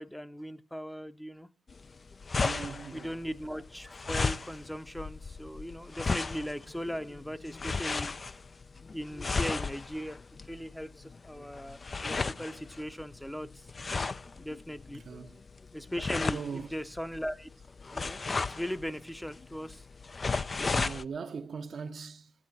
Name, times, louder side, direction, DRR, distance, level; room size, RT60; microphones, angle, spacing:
voice 1, 0.0-1.5 2.9-8.1 8.9-10.2 10.5-10.9 11.2-13.5 14.4-15.0 15.7-17.5 17.9-18.2 18.5-19.8 20.8-20.9, equal, 5° left, 0.7 m, -38 dB
sound 1, 1.7-21.0, left 4 dB, 40° left, 0.5 m, -35 dB
voice 2, 2.4-3.3 14.9-15.4 16.1-16.8 20.7-22.3, right 5 dB, 60° right, 0.7 m, -40 dB
15.0 x 9.8 x 4.2 m
supercardioid pair, 55°, 0 cm